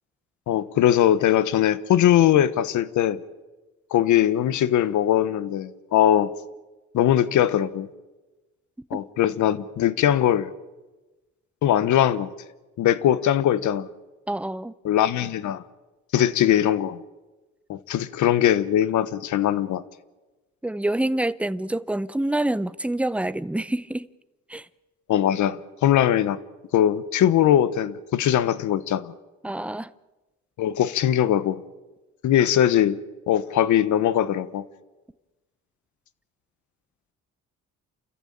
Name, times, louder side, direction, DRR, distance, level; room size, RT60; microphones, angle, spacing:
voice 1, 0.5-3.2 3.9-6.3 6.9-7.9 8.9-10.5 11.6-12.3 12.8-13.9 14.8-15.6 16.1-17.0 17.7-19.8 25.1-26.4 26.7-29.1 30.6-31.6 32.2-33.0 33.3-34.6, left 11 dB, 75° left, 1.2 m, -21 dB
voice 2, 14.3-14.7 20.6-24.1 24.5-24.6 29.4-29.9, right 1 dB, 5° right, 0.7 m, -26 dB
29.0 x 14.0 x 8.8 m
cardioid pair, 90°, 30 cm